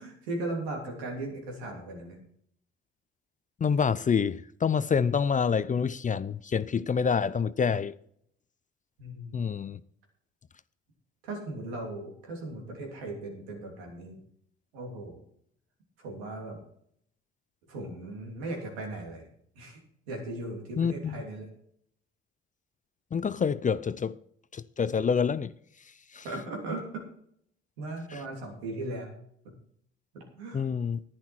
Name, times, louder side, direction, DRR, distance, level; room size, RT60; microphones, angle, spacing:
voice 1, 0.0-2.2 9.0-9.4 11.2-14.2 14.7-15.2 16.0-16.6 17.7-19.3 19.5-19.8 20.1-21.5 26.2-27.0 27.8-29.1 29.4-29.5 30.1-30.6, right 2 dB, 90° right, 3.2 m, -37 dB
voice 2, 3.6-7.9 9.3-9.8 20.8-21.2 23.1-24.2 24.5-25.5 26.1-26.2 28.1-28.2 30.5-31.0, left 6 dB, 25° left, 0.5 m, -27 dB
10.5 x 10.5 x 4.4 m
hypercardioid pair, 60°, 30 cm